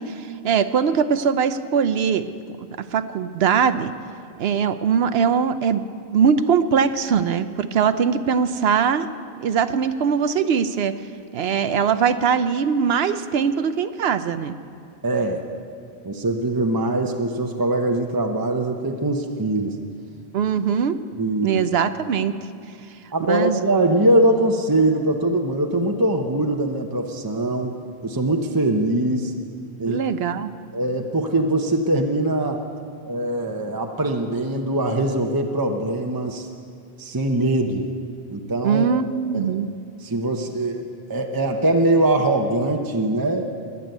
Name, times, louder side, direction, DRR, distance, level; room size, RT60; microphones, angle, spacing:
voice 1, 0.0-2.3 2.8-3.9 4.4-5.8 6.1-9.1 9.4-10.9 11.3-14.6 20.3-21.0 21.4-22.3 23.3-23.6 29.9-30.5 38.6-39.7, right 7 dB, 75° right, 11 dB, 0.9 m, -21 dB
voice 2, 15.0-15.4 16.0-19.8 21.2-21.6 23.1-27.7 28.0-29.3 29.8-30.0 30.7-32.6 33.1-36.5 37.0-37.9 38.3-38.9 39.3-39.5 40.0-43.4, right 1 dB, 20° right, 3 dB, 0.8 m, -22 dB
20.5 x 7.1 x 9.1 m, 2.4 s
omnidirectional pair, 1.1 m